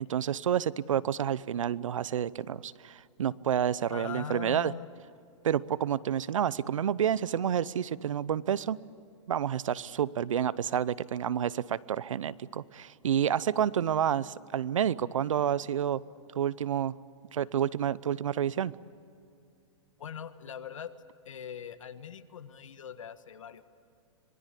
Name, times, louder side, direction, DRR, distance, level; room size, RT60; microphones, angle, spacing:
voice 1, 0.0-4.7 5.4-8.8 9.3-16.0 16.3-17.0 17.3-18.7, right 9 dB, 90° right, 20 dB, 0.7 m, -29 dB
voice 2, 3.9-4.9 20.0-20.9 21.2-23.7, left 8 dB, 90° left, 10 dB, 1.5 m, -41 dB
26.0 x 20.5 x 8.4 m, 2.5 s
hypercardioid pair, 145°, 16 cm